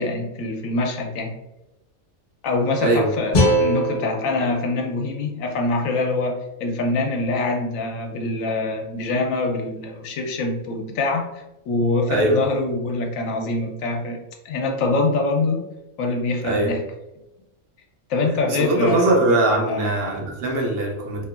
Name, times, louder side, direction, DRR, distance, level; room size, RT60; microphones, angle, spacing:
voice 1, 0.0-1.3 2.4-14.2 14.4-15.6 16.0-16.8 18.1-19.2 19.7-19.9, left 2 dB, 80° left, 2 dB, 1.0 m, -24 dB
voice 2, 2.8-3.1 12.1-12.4 16.4-16.7 18.5-21.3, right 2 dB, 60° right, 0 dB, 0.7 m, -21 dB
sound 1, 3.3-6.4, equal, 50° left, 0.8 m, -24 dB
2.8 x 2.6 x 2.4 m, 0.93 s
omnidirectional pair, 1.4 m